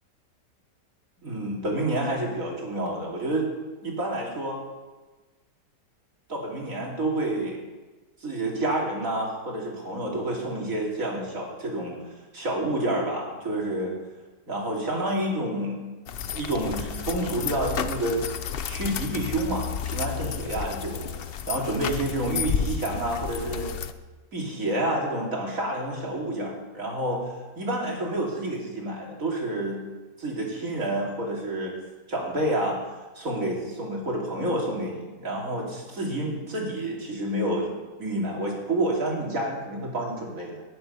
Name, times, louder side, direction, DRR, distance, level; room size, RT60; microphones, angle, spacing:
voice 1, 1.2-3.5 3.8-4.6 6.3-7.6 8.2-12.0 12.3-13.9 14.5-15.8 16.3-18.2 18.7-23.7 24.3-27.2 27.6-29.8 30.2-31.7 32.1-32.8 33.1-37.7 38.0-40.6, right 1 dB, 50° right, -2 dB, 3.3 m, -29 dB
sound 1, 16.1-23.9, left 7 dB, 85° left, 0.5 m, -32 dB
19.0 x 8.1 x 5.6 m, 1.3 s
omnidirectional pair, 1.8 m